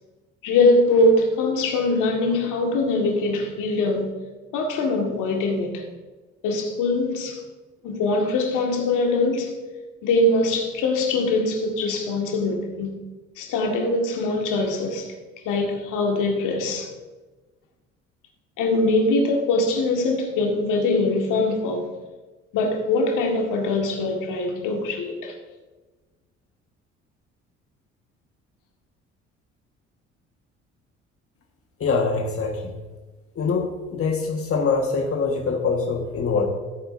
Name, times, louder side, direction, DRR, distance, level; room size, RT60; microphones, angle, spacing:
voice 1, 0.4-4.1 4.5-5.8 6.4-7.4 7.8-9.5 10.0-12.9 13.4-15.1 15.5-16.9 18.6-21.9 22.5-25.3, left 2 dB, 60° left, 2 dB, 2.0 m, -22 dB
voice 2, 31.8-32.7 33.3-36.5, left 4 dB, 40° left, 2 dB, 1.6 m, -24 dB
14.5 x 8.9 x 2.7 m, 1.2 s
hypercardioid pair, 50°, 35 cm